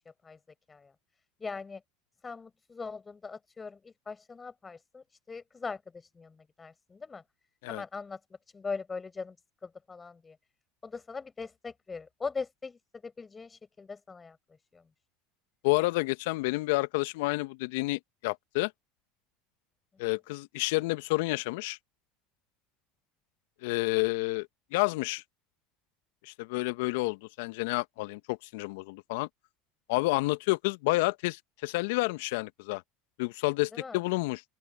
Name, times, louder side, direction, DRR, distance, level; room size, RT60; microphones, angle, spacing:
voice 1, 1.4-1.8 2.2-7.2 7.7-8.2 8.5-9.3 9.6-10.4 10.8-14.4 14.7-14.8 33.7-34.0, left 4 dB, 20° left, 5.0 m, -40 dB
voice 2, 15.6-18.7 20.0-21.8 23.6-25.2 26.2-29.3 29.9-32.8 33.2-34.4, left 23 dB, 70° left, 1.4 m, -29 dB
open air
hypercardioid pair, 80°, 0 cm